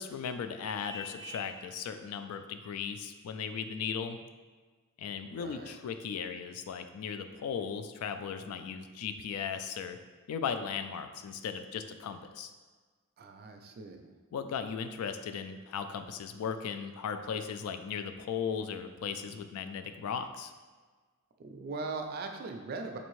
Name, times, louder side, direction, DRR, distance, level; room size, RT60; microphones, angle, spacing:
voice 1, 0.0-4.2 5.0-10.0 10.3-12.5 14.3-20.5, left 6 dB, 75° left, 12 dB, 0.3 m, -37 dB
Vehicle horn car horn honking, 0.8-1.6, left 2 dB, 55° left, 1.4 m, -44 dB
voice 2, 5.3-5.8 13.2-14.1 21.4-23.0, right 3 dB, 45° right, 4 dB, 0.4 m, -40 dB
4.1 x 2.7 x 3.0 m, 1.4 s
head